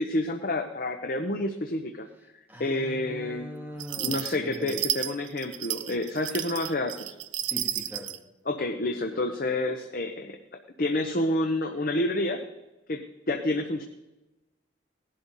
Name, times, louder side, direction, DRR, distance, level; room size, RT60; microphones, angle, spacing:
voice 1, 0.0-2.1 2.6-3.5 4.0-7.1 8.5-12.4 12.9-13.8, left 1 dB, 45° left, 5 dB, 0.9 m, -29 dB
voice 2, 2.5-4.8 7.4-8.2, equal, 10° right, -2 dB, 2.6 m, -41 dB
sound 1, 3.8-8.2, right 12 dB, 75° right, 0.6 m, -32 dB
18.5 x 11.5 x 4.1 m, 1.0 s
head